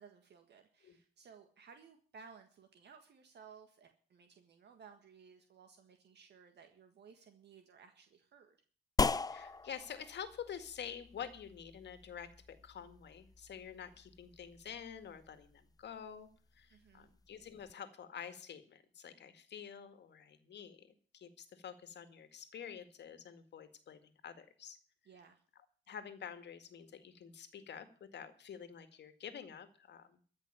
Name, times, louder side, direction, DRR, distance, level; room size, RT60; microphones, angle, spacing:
voice 1, 0.0-8.6 16.7-17.1 25.0-25.4, right 6 dB, 60° right, 6 dB, 1.7 m, -59 dB
sound 1, 9.0-17.7, left 4 dB, 20° left, 0.5 m, -41 dB
voice 2, 9.3-16.3 16.5-20.9 21.1-24.8 25.9-30.2, left 8 dB, 60° left, 10 dB, 2.0 m, -48 dB
14.5 x 6.0 x 9.9 m, 0.43 s
cardioid pair, 90°, 20 cm